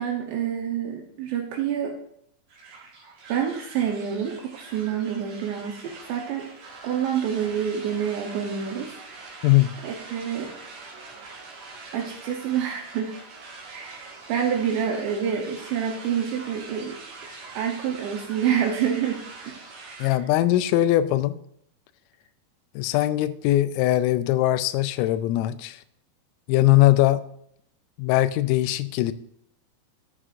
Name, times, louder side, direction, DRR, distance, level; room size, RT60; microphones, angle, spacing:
voice 1, 0.0-1.9 2.7-2.8 3.3-6.5 6.8-9.4 9.8-10.5 11.9-13.2 13.7-17.0 17.6-19.2 19.4-19.5 19.8-20.1, right 8 dB, 75° right, 1 dB, 2.7 m, -27 dB
sound 1, 2.5-20.2, right 3 dB, 60° right, 2.1 m, -44 dB
voice 2, 20.0-21.4 22.8-25.8 26.5-27.2 28.0-29.1, left 15 dB, 85° left, 13 dB, 3.2 m, -21 dB
11.0 x 8.6 x 2.5 m, 0.70 s
omnidirectional pair, 5.9 m